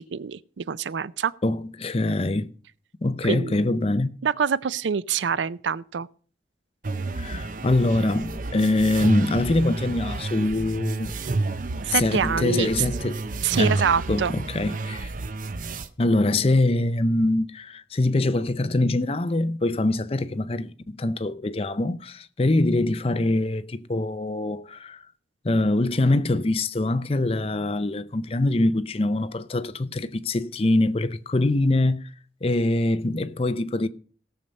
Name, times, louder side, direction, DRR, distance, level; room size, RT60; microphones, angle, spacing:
voice 1, 0.1-1.3 3.2-3.6 4.2-6.1 11.8-12.7 13.4-14.3, right 6 dB, 85° right, 0.5 m, -25 dB
voice 2, 1.4-2.5 3.0-4.1 7.2-11.2 11.9-13.2 13.6-15.1 16.0-25.0 25.4-32.1 32.4-33.9, left 2 dB, 30° left, 0.5 m, -24 dB
sound 1, 6.8-15.9, right 3 dB, 45° right, 0.7 m, -30 dB
17.0 x 6.9 x 5.3 m
head